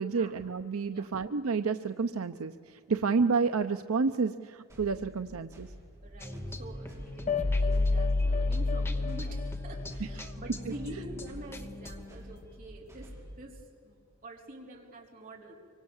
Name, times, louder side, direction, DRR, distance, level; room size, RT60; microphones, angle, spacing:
voice 1, 0.0-5.7 10.2-10.3, right 4 dB, 75° right, 9 dB, 0.6 m, -30 dB
sound 1, 4.7-13.5, equal, 15° right, 6.1 m, -49 dB
voice 2, 6.0-14.0 14.2-15.5, right 1 dB, 40° right, -1 dB, 4.2 m, -46 dB
sound 2, 6.2-12.7, left 1 dB, 10° left, 1.1 m, -43 dB
sound 3, 7.3-10.4, left 3 dB, 30° left, 0.7 m, -29 dB
25.0 x 24.0 x 7.2 m, 2.3 s
head